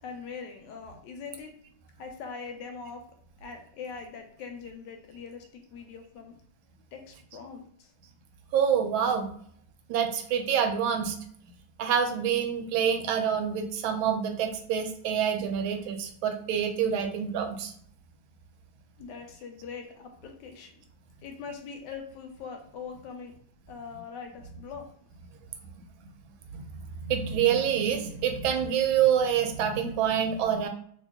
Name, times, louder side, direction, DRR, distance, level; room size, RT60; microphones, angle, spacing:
voice 1, 0.0-1.5 2.0-3.1 3.4-6.4 6.9-7.9 19.0-20.8 21.2-23.3 23.7-24.9, left 5 dB, 75° left, 4 dB, 1.1 m, -42 dB
voice 2, 8.5-9.3 9.9-11.2 11.8-17.7 26.7-30.7, right 8 dB, 85° right, 6 dB, 1.4 m, -26 dB
2.9 x 2.7 x 3.4 m, 0.64 s
omnidirectional pair, 2.1 m